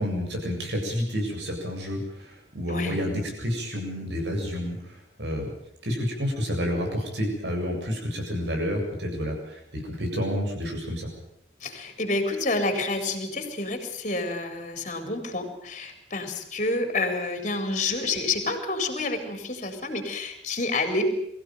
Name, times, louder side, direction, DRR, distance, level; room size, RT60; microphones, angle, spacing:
voice 1, 0.0-5.5 5.8-11.1, equal, 75° right, 1 dB, 7.8 m, -29 dB
voice 2, 11.6-21.0, left 2 dB, 40° left, 6 dB, 4.2 m, -29 dB
23.5 x 15.5 x 9.3 m, 0.74 s
head